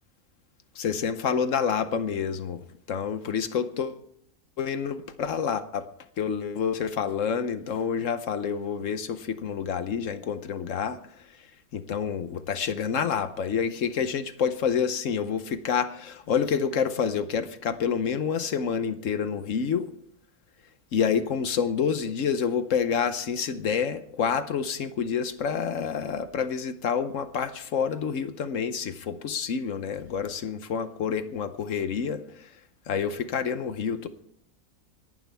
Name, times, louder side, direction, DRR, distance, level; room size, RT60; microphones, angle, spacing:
voice 1, 0.8-4.0 4.6-5.8 6.2-11.0 11.9-19.9 20.9-32.5 32.9-34.1, left 7 dB, 60° left, 1.1 m, -28 dB
26.5 x 11.0 x 3.5 m
omnidirectional pair, 1.6 m